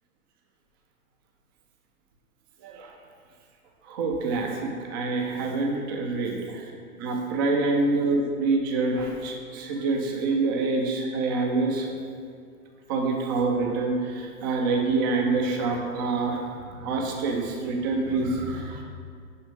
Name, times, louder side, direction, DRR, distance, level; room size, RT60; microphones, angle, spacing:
voice 1, 2.6-2.9 3.8-6.7 7.0-12.0 12.9-18.8, right 3 dB, 15° right, 1 dB, 0.3 m, -26 dB
6.6 x 4.9 x 5.1 m, 2.2 s
hypercardioid pair, 125°, 45 cm